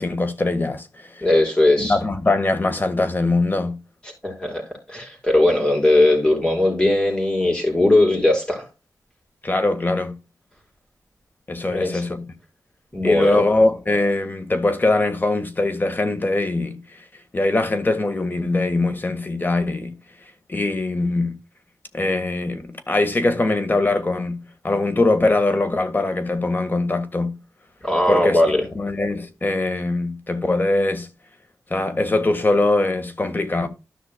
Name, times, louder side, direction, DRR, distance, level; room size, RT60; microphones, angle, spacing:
voice 1, 0.0-1.2 1.8-3.8 9.4-10.2 11.5-12.3 13.0-17.0 17.3-20.0 20.5-21.4 21.9-24.4 24.6-27.4 28.1-28.4 28.7-31.1 31.7-33.7, left 2 dB, 30° left, 1.6 m, -22 dB
voice 2, 1.2-2.0 4.2-8.7 11.7-12.0 12.9-13.4 27.8-28.6, left 1 dB, 15° left, 5.0 m, -19 dB
13.5 x 6.0 x 2.2 m
wide cardioid pair, 90°, 7 cm